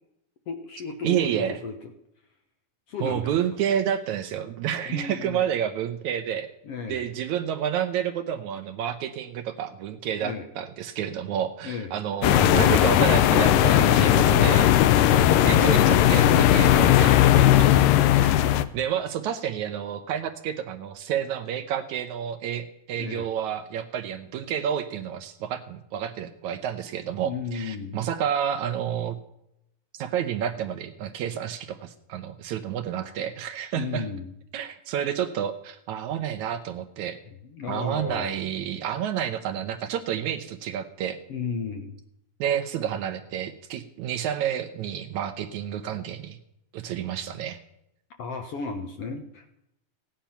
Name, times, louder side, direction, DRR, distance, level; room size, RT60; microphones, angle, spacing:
voice 1, 0.5-1.7 2.9-3.3 4.9-5.5 6.6-7.0 10.2-10.5 11.6-11.9 23.0-23.3 27.2-28.0 33.7-34.3 37.4-38.4 41.3-42.0 48.2-49.5, left 5 dB, 65° left, 5 dB, 1.6 m, -34 dB
voice 2, 1.0-1.6 3.0-6.5 6.9-17.7 18.2-18.3 18.7-29.2 30.0-34.1 34.5-37.2 37.7-41.2 42.4-46.4 46.7-47.6, right 9 dB, 75° right, 7 dB, 2.0 m, -30 dB
sound 1, 12.2-18.7, left 12 dB, 85° left, 2.4 m, -18 dB
16.5 x 10.5 x 5.7 m, 0.81 s
omnidirectional pair, 3.8 m